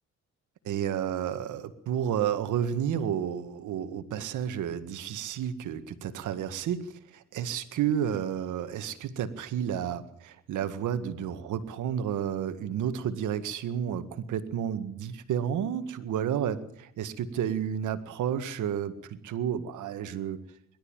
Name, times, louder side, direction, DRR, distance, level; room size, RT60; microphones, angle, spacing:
voice 1, 0.6-20.4, right 9 dB, 80° right, 11 dB, 1.9 m, -31 dB
23.0 x 13.0 x 9.0 m, 0.73 s
cardioid pair, 90°, 30 cm